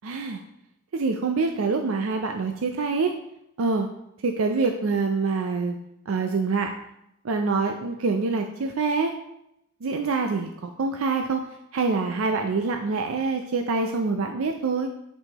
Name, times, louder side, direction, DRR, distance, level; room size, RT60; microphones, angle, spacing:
voice 1, 0.0-0.4 0.9-3.1 3.6-3.9 4.2-5.8 6.1-6.7 7.2-9.1 9.8-11.4 11.7-14.9, right 4 dB, 85° right, 4 dB, 0.5 m, -25 dB
6.8 x 5.5 x 2.9 m, 0.80 s
head